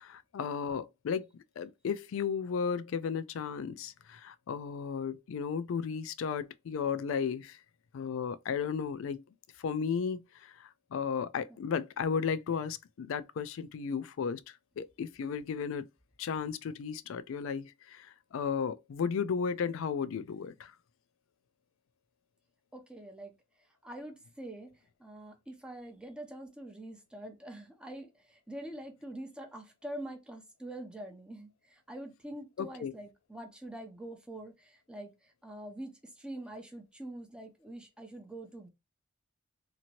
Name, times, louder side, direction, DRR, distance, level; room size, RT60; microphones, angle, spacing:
voice 1, 0.0-7.6 7.9-9.2 9.6-14.4 14.8-15.9 16.2-20.7 32.6-32.9, left 6 dB, 65° left, 0.3 m, -34 dB
voice 2, 22.7-23.3 23.8-24.7 25.0-38.7, right 1 dB, 5° right, 0.5 m, -45 dB
2.9 x 2.6 x 2.8 m
head